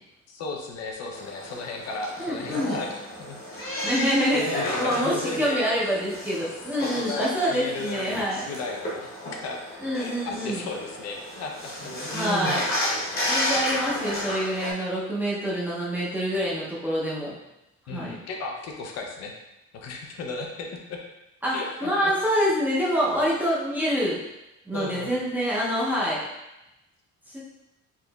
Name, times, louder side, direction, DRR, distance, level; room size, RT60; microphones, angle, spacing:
voice 1, 0.3-3.4 3.6-4.0 4.5-5.6 6.8-9.6 9.9-11.5 12.1-12.4 17.9-19.3 19.7-21.0 21.5-22.1 24.7-25.1, left 3 dB, 55° left, 1 dB, 0.6 m, -35 dB
sound 1, 1.1-14.7, left 1 dB, 30° left, 0.9 m, -32 dB
voice 2, 2.2-2.8 3.8-8.4 9.8-10.6 12.1-12.7 13.3-17.3 17.9-18.2 21.4-24.2 24.7-26.2 27.3-27.4, equal, 5° right, -7 dB, 0.6 m, -26 dB
4.6 x 2.9 x 2.2 m, 0.93 s
cardioid pair, 170°, 30 cm